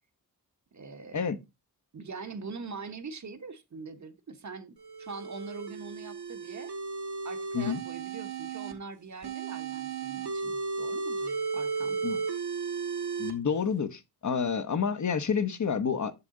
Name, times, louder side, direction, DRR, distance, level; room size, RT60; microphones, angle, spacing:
voice 1, 0.7-1.3 1.9-6.7 7.2-12.2, right 4 dB, 45° right, 1.2 m, -43 dB
Westminster Default, 4.8-8.7 9.2-13.3, right 4 dB, 85° right, 2.2 m, -34 dB
voice 2, 13.2-16.1, left 6 dB, 50° left, 0.9 m, -29 dB
7.5 x 7.0 x 3.8 m
wide cardioid pair, 120°, 38 cm